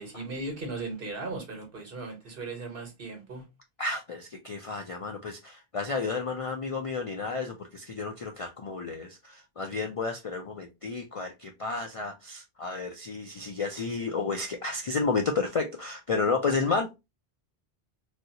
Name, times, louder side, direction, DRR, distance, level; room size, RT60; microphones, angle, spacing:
voice 1, 0.0-3.4, right 3 dB, 65° right, 1.3 m, -37 dB
voice 2, 3.8-17.1, left 4 dB, 55° left, 0.4 m, -31 dB
3.2 x 2.6 x 2.7 m
omnidirectional pair, 1.0 m